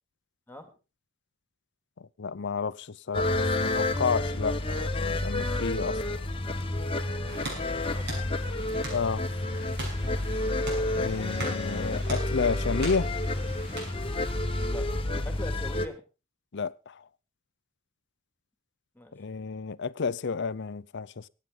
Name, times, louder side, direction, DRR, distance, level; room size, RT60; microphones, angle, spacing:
voice 1, 2.2-6.0 8.9-9.3 11.0-13.1 16.5-17.0 19.1-21.3, left 5 dB, 60° left, 0.6 m, -31 dB
sound 1, 3.1-15.9, left 2 dB, 25° left, 1.1 m, -30 dB
sound 2, 7.3-14.7, right 2 dB, 55° right, 6.8 m, -41 dB
voice 2, 7.9-8.3 10.0-10.4 14.6-14.9 15.2-16.0 18.9-19.1, left 1 dB, 10° left, 2.3 m, -42 dB
23.5 x 9.1 x 3.9 m
head